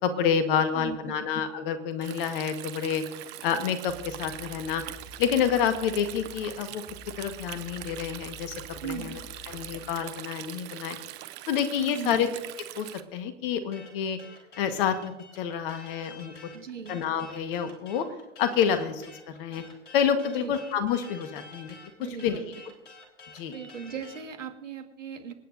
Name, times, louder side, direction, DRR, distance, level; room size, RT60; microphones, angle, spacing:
voice 1, 0.0-3.0 3.4-4.8 5.2-6.8 7.2-8.5 8.8-9.2 9.5-11.0 11.5-12.3 12.7-14.2 14.6-16.3 16.9-18.1 18.4-19.6 19.9-21.7 22.2-22.4 23.3-23.6, left 8 dB, 45° left, 9 dB, 1.5 m, -28 dB
voice 2, 0.7-1.2 8.8-9.2 11.8-12.2 16.5-17.0 20.4-20.5 22.0-22.7 23.5-25.3, right 7 dB, 75° right, 6 dB, 2.0 m, -38 dB
Stream, 2.0-13.0, right 15 dB, 30° right, 0.8 m, -42 dB
sound 1, 3.9-9.9, left 3 dB, 15° left, 3.6 m, -48 dB
sound 2, 13.7-24.3, left 3 dB, 70° left, 4.1 m, -49 dB
27.0 x 9.1 x 2.7 m, 0.92 s
figure-of-eight pair, 105°, 37 cm